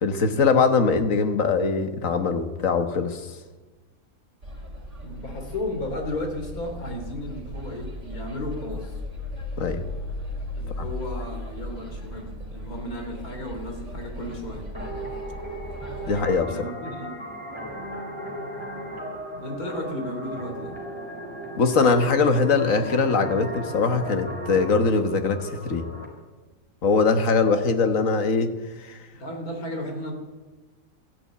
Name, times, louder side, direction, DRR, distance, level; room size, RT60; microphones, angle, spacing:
voice 1, 0.0-3.3 9.6-9.8 10.8-10.9 16.1-16.5 21.6-25.9 26.8-29.0, left 4 dB, 65° left, 8 dB, 1.6 m, -22 dB
sound 1, 4.4-16.4, left 1 dB, 55° right, 3.7 m, -37 dB
voice 2, 5.0-9.0 10.6-14.7 16.5-17.2 19.3-20.8 29.1-30.1, left 1 dB, 85° left, 3 dB, 3.4 m, -34 dB
sound 2, 14.7-26.1, right 1 dB, 20° left, 3.9 m, -36 dB
14.0 x 11.0 x 8.5 m, 1.2 s
omnidirectional pair, 1.5 m